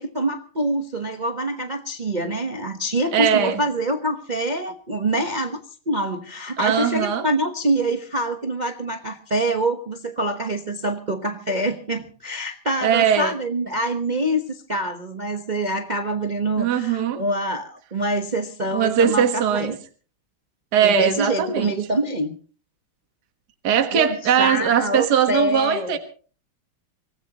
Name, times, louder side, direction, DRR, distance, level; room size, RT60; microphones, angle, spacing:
voice 1, 0.0-5.6 5.9-19.8 20.8-22.3 23.9-26.0, right 1 dB, 30° right, 5 dB, 0.9 m, -25 dB
voice 2, 3.1-3.6 6.6-7.3 12.8-13.3 16.6-17.2 18.7-19.7 20.7-21.7 23.6-26.0, right 8 dB, 50° right, 6 dB, 1.9 m, -20 dB
25.0 x 18.0 x 3.0 m, 0.40 s
omnidirectional pair, 2.3 m